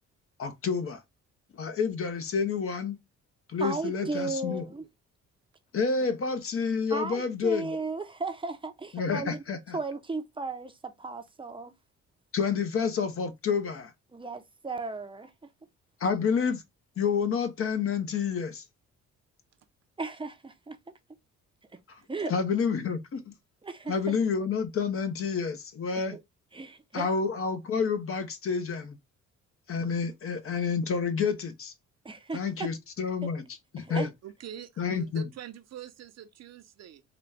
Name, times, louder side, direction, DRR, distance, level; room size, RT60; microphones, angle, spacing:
voice 1, 0.4-1.0 1.5-3.0 3.5-4.7 5.7-7.8 8.9-9.8 12.3-13.9 16.0-16.6 17.0-18.6 21.9-22.0 22.3-23.3 23.9-26.2 26.9-29.0 29.7-31.7 32.3-33.4 33.7-34.1 34.8-35.2, left 5 dB, 45° left, 0.8 m, -29 dB
voice 2, 3.6-4.9 6.9-9.4 9.7-11.7 14.1-15.3 20.0-20.8 22.1-22.4 23.6-24.2 26.0-26.2 26.5-27.1 32.0-32.7 33.8-34.1, right 3 dB, 15° right, 0.6 m, -35 dB
voice 3, 34.2-37.0, right 10 dB, 60° right, 0.7 m, -44 dB
3.9 x 2.2 x 3.3 m
cardioid pair, 90°, 30 cm